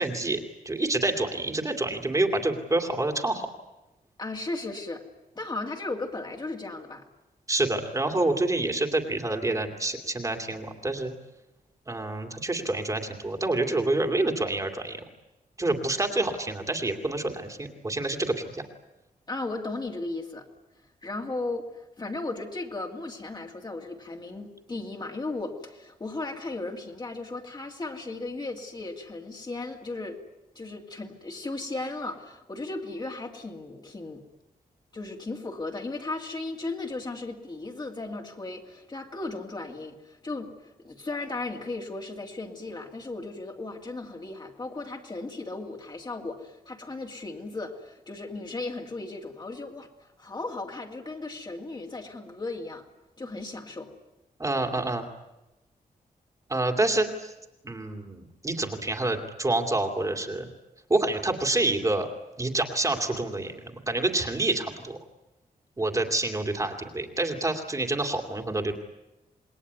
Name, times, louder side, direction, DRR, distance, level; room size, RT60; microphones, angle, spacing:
voice 1, 0.0-3.5 7.5-11.1 11.9-15.0 15.6-18.6 54.4-55.0 56.5-57.3 57.6-60.5 60.9-62.1 62.4-65.0 65.8-68.7, right 2 dB, 20° right, 4 dB, 2.5 m, -27 dB
voice 2, 4.2-5.0 5.3-7.0 19.3-20.5 21.0-30.2 30.6-34.2 34.9-52.8 53.2-53.9, left 2 dB, 25° left, 2 dB, 2.5 m, -36 dB
27.5 x 21.0 x 9.5 m, 0.97 s
wide cardioid pair, 165°, 16 cm